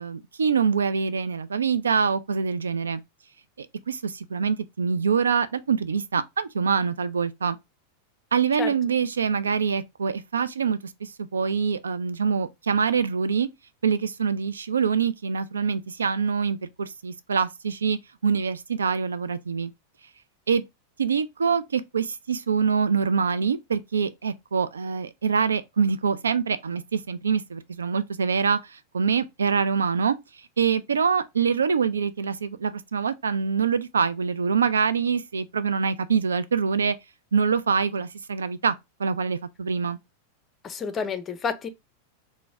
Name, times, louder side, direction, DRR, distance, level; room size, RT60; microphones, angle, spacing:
voice 1, 0.0-3.0 3.6-7.6 8.3-13.5 13.8-19.7 20.5-20.6 21.0-30.2 30.6-37.0 37.3-38.7 39.0-40.0, right 6 dB, 70° right, 0.3 m, -25 dB
voice 2, 40.6-41.7, left 5 dB, 25° left, 0.5 m, -29 dB
3.9 x 2.1 x 3.6 m
figure-of-eight pair, 90°, 0 cm